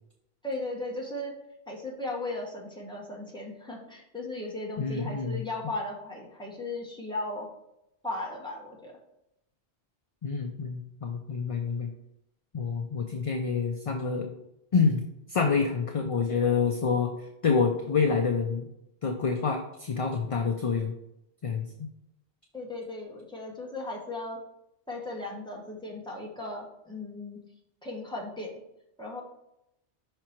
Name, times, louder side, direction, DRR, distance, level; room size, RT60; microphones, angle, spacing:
voice 1, 0.4-1.3 1.7-7.5 8.0-8.9 22.5-24.4 24.9-27.4 27.8-28.6 29.0-29.2, left 2 dB, 5° left, -3 dB, 1.3 m, -36 dB
voice 2, 4.8-5.4 10.2-11.9 12.5-14.3 14.7-15.0 15.3-17.1 17.4-18.7 19.0-20.9 21.4-21.7, left 5 dB, 45° left, 4 dB, 0.5 m, -27 dB
5.8 x 4.5 x 4.4 m, 0.84 s
omnidirectional pair, 1.1 m